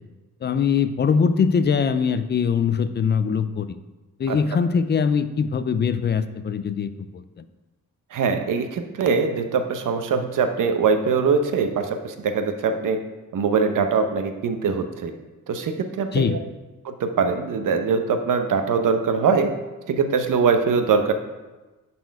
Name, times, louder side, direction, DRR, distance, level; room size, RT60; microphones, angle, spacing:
voice 1, 0.4-3.8 4.2-7.4 16.1-16.4, left 6 dB, 30° left, 12 dB, 0.4 m, -22 dB
voice 2, 8.1-13.0 13.3-15.1 15.5-16.2 16.8-19.5 19.9-21.1, right 5 dB, 65° right, 6 dB, 0.9 m, -22 dB
10.5 x 4.3 x 4.7 m, 1.1 s
wide cardioid pair, 140°, 33 cm